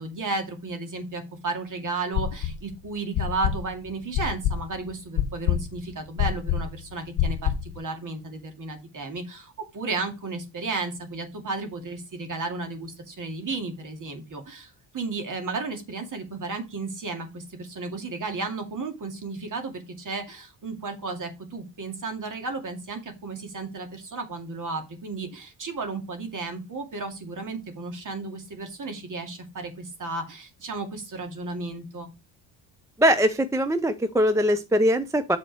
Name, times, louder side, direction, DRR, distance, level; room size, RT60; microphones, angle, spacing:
voice 1, 0.0-32.1, right 3 dB, 40° right, 5 dB, 2.3 m, -33 dB
sound 1, 2.1-2.7 3.1-7.8, left 9 dB, 65° left, 1.2 m, -26 dB
voice 2, 33.0-35.4, equal, 5° right, 11 dB, 0.5 m, -21 dB
8.0 x 4.3 x 4.7 m, 0.27 s
cardioid pair, 130°, 49 cm